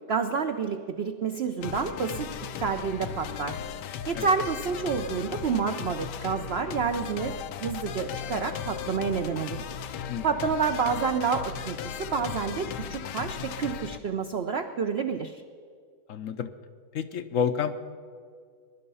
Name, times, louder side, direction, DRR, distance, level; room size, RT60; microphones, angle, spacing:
voice 1, 0.1-3.5 4.1-7.3 7.6-9.7 10.2-15.4, right 5 dB, 60° right, 6 dB, 0.6 m, -29 dB
sound 1, 1.6-14.0, left 8 dB, 90° left, 1.3 m, -36 dB
voice 2, 16.1-16.5 16.9-17.8, left 7 dB, 65° left, 10 dB, 0.9 m, -29 dB
22.5 x 11.0 x 5.5 m, 2.1 s
omnidirectional pair, 1.8 m